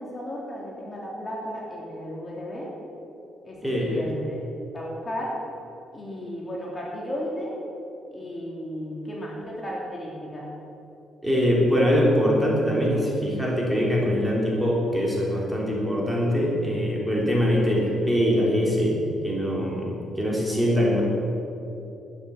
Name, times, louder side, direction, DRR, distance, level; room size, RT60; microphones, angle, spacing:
voice 1, 0.0-2.7 3.4-5.4 5.9-7.6 8.1-10.5, equal, 25° left, -3 dB, 3.2 m, -34 dB
voice 2, 3.6-4.0 11.2-19.0 19.2-19.9 20.2-21.0, equal, 5° right, -3 dB, 3.6 m, -23 dB
12.0 x 10.0 x 7.2 m, 2.9 s
cardioid pair, 90°, 0 cm